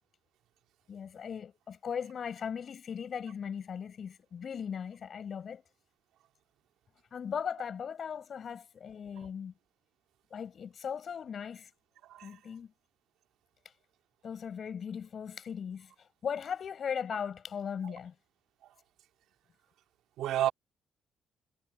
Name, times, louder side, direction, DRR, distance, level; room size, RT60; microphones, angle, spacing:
voice 1, 0.9-5.6 7.1-9.5 10.3-11.7 12.2-12.7 14.2-18.1, left 7 dB, 50° left, 6.9 m, -38 dB
voice 2, 12.0-12.4 17.8-17.9 18.6-18.7 20.2-20.5, right 12 dB, 85° right, 2.2 m, -32 dB
cardioid pair, 90°, 0 cm